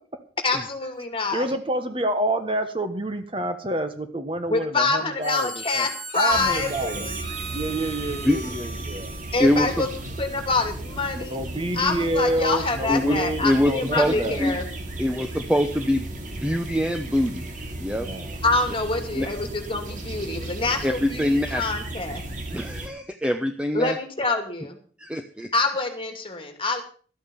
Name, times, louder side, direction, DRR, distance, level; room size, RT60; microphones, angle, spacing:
voice 1, 0.4-1.5 4.5-7.2 9.3-9.9 10.2-11.4 11.7-14.6 18.4-22.2 23.7-24.8 25.5-26.8, left 3 dB, 30° left, 6 dB, 2.5 m, -26 dB
voice 2, 1.3-5.9 6.1-7.1 7.5-9.1 11.1-14.4 17.9-18.4, right 1 dB, 30° right, 8 dB, 1.3 m, -28 dB
Harmonica, 5.2-10.4, right 3 dB, 85° right, 7.6 m, -38 dB
sound 1, 6.3-22.9, right 1 dB, 45° right, 2.6 m, -35 dB
voice 3, 9.4-9.8 12.9-13.2 13.4-14.1 14.4-14.6 15.0-17.5 17.8-18.1 19.1-19.3 20.8-21.6 22.5-24.0 25.0-25.5, left 1 dB, 5° right, 6 dB, 0.8 m, -24 dB
13.0 x 8.7 x 7.0 m, 0.42 s
head